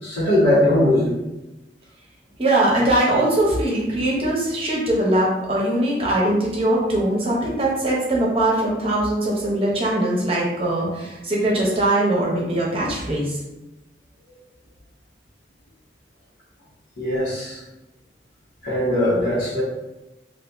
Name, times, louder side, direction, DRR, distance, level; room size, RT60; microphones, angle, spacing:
voice 1, 0.0-1.1 14.3-14.4 17.0-17.6 18.6-19.6, left 1 dB, 80° left, -12 dB, 1.2 m, -20 dB
voice 2, 2.4-13.4, right 1 dB, 35° right, -4 dB, 0.9 m, -21 dB
2.7 x 2.6 x 3.5 m, 0.97 s
head